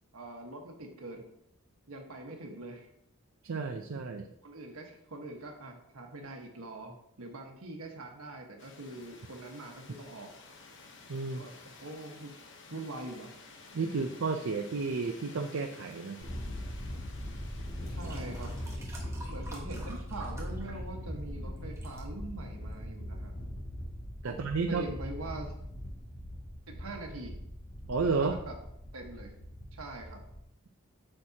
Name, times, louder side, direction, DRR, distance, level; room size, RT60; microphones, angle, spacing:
voice 1, 0.1-1.2 1.9-2.9 4.4-10.3 11.2-11.5 11.8-12.3 12.7-13.3 17.9-18.6 19.2-23.3 24.2-24.4 24.7-25.5 26.7-27.4 28.2-28.5 28.9-29.3 29.7-30.2, right 2 dB, 90° right, 2 dB, 1.4 m, -43 dB
voice 2, 3.4-4.3 11.1-11.4 13.7-16.2 24.2-24.9 27.9-28.4, right 4 dB, 70° right, 5 dB, 0.5 m, -32 dB
sound 1, 8.6-18.8, left 3 dB, 60° left, 1.0 m, -53 dB
Thunder, 16.2-30.4, equal, 80° left, 2.5 m, -40 dB
sound 2, 17.8-21.3 21.6-22.0 22.7-22.8, right 1 dB, 15° right, 1.4 m, -49 dB
8.6 x 6.3 x 2.8 m, 0.75 s
head